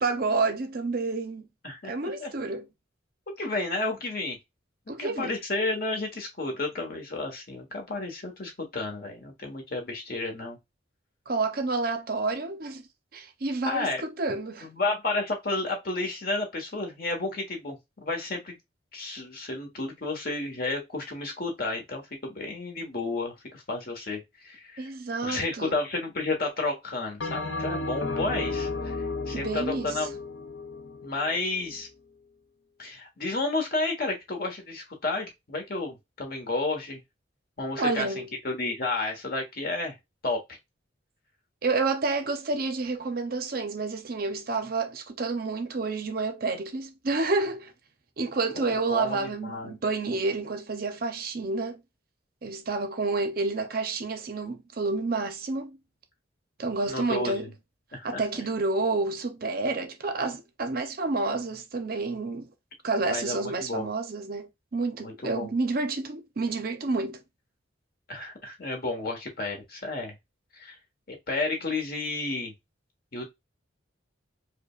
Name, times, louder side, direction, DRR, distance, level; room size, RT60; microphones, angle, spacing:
voice 1, 0.0-1.5 1.8-2.7 4.9-5.3 11.3-12.8 13.1-14.7 24.8-25.7 29.3-30.1 37.8-38.3 41.6-47.7 48.2-51.8 52.4-55.8 56.6-57.5 58.0-62.5 62.8-67.2, right 3 dB, 50° right, 0.6 m, -29 dB
voice 2, 1.6-2.3 3.3-4.4 5.0-10.6 13.7-14.0 14.6-18.6 18.9-24.9 25.2-28.9 29.3-30.1 31.0-31.9 32.8-37.0 37.6-39.9 40.2-40.6 48.6-49.7 56.9-57.5 57.9-58.2 63.0-63.9 65.0-65.5 68.1-70.1 70.5-70.8 71.1-72.5 73.1-73.3, left 2 dB, 50° left, 1.2 m, -32 dB
Bell, 27.2-31.8, left 3 dB, 65° left, 0.6 m, -33 dB
4.9 x 2.2 x 2.4 m
head